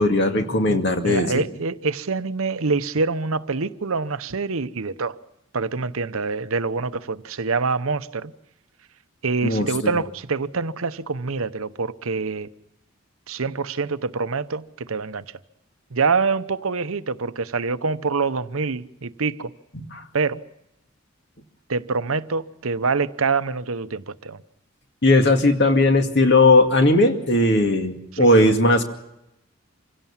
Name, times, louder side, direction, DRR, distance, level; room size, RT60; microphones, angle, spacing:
voice 1, 0.0-1.5 9.4-9.9 19.7-20.0 25.0-28.8, left 2 dB, 50° left, 2.3 m, -18 dB
voice 2, 1.0-5.1 5.5-8.3 9.2-12.5 13.3-15.2 15.9-19.5 20.1-20.4 21.7-24.4 28.1-28.4, right 4 dB, 75° right, 0.9 m, -25 dB
26.0 x 17.0 x 7.3 m
head